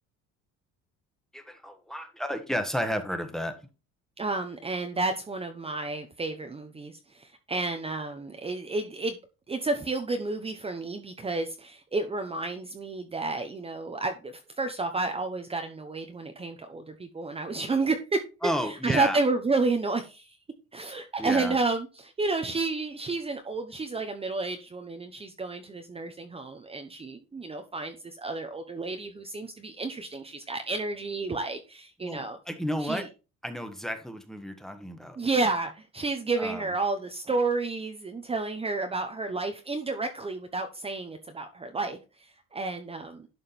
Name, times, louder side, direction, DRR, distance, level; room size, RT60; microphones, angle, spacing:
voice 1, 1.3-3.6 18.4-19.2 21.2-21.6 32.0-33.1 33.4-35.2 36.4-36.7, equal, ahead, 1.4 m, -32 dB
voice 2, 4.2-9.2 9.5-18.2 18.8-20.4 20.7-32.4 32.8-33.0 35.2-43.3, right 3 dB, 20° right, 1.0 m, -31 dB
11.5 x 5.0 x 4.2 m
cardioid pair, 130°, 30 cm